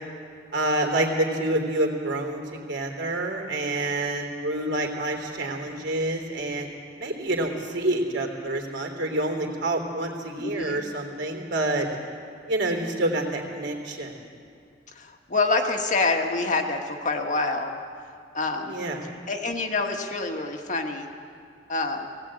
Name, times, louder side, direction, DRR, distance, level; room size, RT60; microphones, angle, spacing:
voice 1, 0.5-6.7 7.0-11.9 12.5-14.1 18.6-19.0, right 1 dB, 70° right, 2 dB, 3.2 m, -27 dB
voice 2, 10.4-10.8 14.9-17.8 18.3-18.8 19.3-21.1 21.7-22.1, left 3 dB, 45° left, 3 dB, 1.6 m, -26 dB
18.0 x 17.5 x 8.8 m, 2.3 s
head